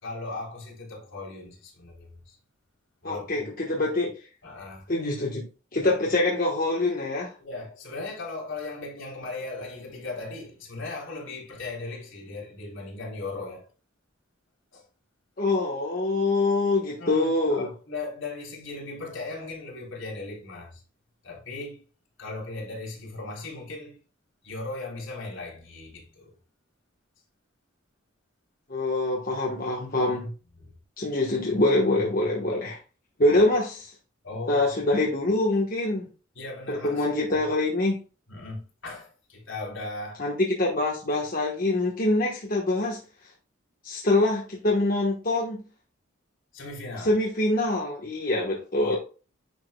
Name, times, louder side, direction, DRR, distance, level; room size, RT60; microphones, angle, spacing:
voice 1, 0.0-2.4 3.0-3.5 4.4-4.9 7.4-13.7 14.7-14.9 17.0-20.8 21.2-21.8 22.2-24.0 24.4-26.4 30.6-30.7 33.3-33.4 34.2-34.9 36.3-37.1 37.3-37.4 38.3-40.3 46.5-47.1 48.8-49.0, left 3 dB, 70° left, 3.5 m, -38 dB
voice 2, 3.0-4.1 4.9-5.5 5.7-7.3 15.4-17.7 28.7-30.3 31.0-32.8 33.2-33.9 34.5-36.1 36.7-37.9 40.2-43.0 43.8-45.6 47.0-49.0, left 2 dB, 45° left, 1.2 m, -25 dB
10.5 x 5.1 x 2.2 m
head